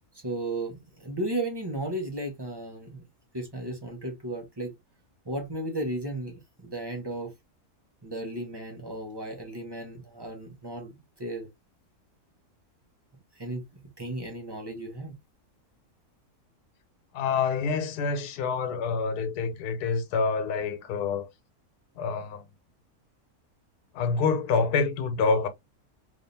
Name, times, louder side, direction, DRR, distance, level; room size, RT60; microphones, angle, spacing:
voice 1, 0.1-3.0 3.3-4.7 5.2-7.3 8.0-11.5 13.3-15.2, right 1 dB, 20° right, 0.9 m, -35 dB
voice 2, 17.1-21.3 22.0-22.4 23.9-25.5, left 5 dB, 80° left, 1.3 m, -27 dB
3.5 x 3.3 x 2.7 m
omnidirectional pair, 1.6 m